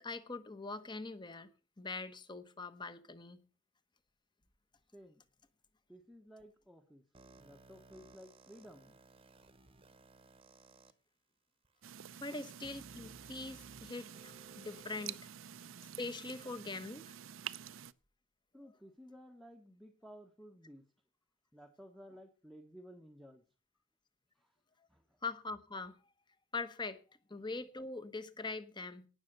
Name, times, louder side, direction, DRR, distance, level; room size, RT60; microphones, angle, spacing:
voice 1, 0.0-1.5 1.8-3.4 12.2-15.3 16.0-17.0 25.2-25.9 26.5-27.0 27.3-29.1, left 3 dB, 20° left, 1.0 m, -42 dB
voice 2, 5.9-7.0 7.4-9.0 12.3-12.4 18.5-20.8 21.5-23.4 24.3-24.5 24.9-25.2 27.3-27.4, equal, ahead, 1.0 m, -55 dB
sound 1, 7.1-10.9 11.6-11.7 12.6-15.1, right 2 dB, 25° right, 1.0 m, -60 dB
sound 2, 11.8-17.9, right 10 dB, 80° right, 0.6 m, -49 dB
17.5 x 6.9 x 6.6 m
head